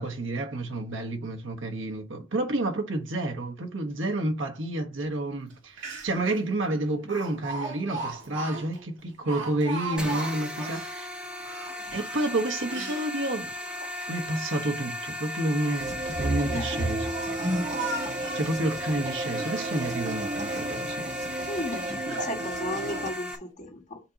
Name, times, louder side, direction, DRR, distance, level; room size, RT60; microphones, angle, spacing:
voice 1, 0.0-11.1 11.9-13.5 14.1-17.1 18.3-21.1, right 2 dB, 85° right, 1.3 m, -30 dB
Speech, 5.5-5.6 5.8-6.3 7.1-10.9 11.4-13.0 13.6-14.4 15.3-15.9 16.6-18.6 19.2-20.0 20.4-20.9 21.4-21.5 22.1-22.4 22.9-23.1, right 2 dB, 70° right, 1.8 m, -38 dB
sound 1, 10.0-23.4, left 1 dB, 5° right, 1.1 m, -36 dB
sound 2, 15.8-23.1, right 2 dB, 40° right, 1.3 m, -32 dB
voice 2, 21.5-24.0, left 1 dB, 40° left, 1.9 m, -35 dB
7.4 x 2.9 x 5.1 m
head